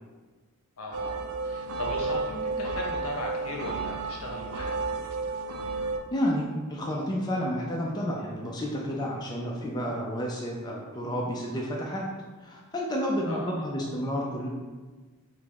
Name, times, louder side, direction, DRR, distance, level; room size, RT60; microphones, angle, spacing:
voice 1, 0.8-5.0 13.2-13.5, left 1 dB, 70° left, -1 dB, 0.8 m, -37 dB
sound 1, 0.9-6.0, right 3 dB, 70° right, 0.4 m, -32 dB
voice 2, 6.1-12.1 12.4-14.5, equal, 20° left, -3 dB, 0.4 m, -30 dB
4.7 x 2.0 x 3.5 m, 1.3 s
head